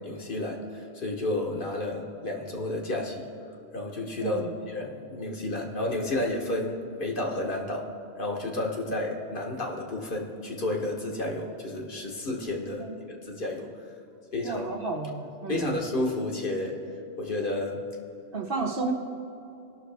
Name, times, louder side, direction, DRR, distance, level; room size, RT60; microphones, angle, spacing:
voice 1, 0.1-3.3 3.7-7.9 8.2-12.9 13.2-13.7 14.3-14.7 15.5-16.8 17.2-17.8, left 1 dB, 50° left, 0 dB, 1.3 m, -31 dB
voice 2, 4.2-4.5 12.8-13.0 14.4-15.8 18.3-18.9, right 3 dB, 55° right, 2 dB, 1.0 m, -32 dB
18.0 x 6.3 x 3.4 m, 2.7 s
omnidirectional pair, 1.2 m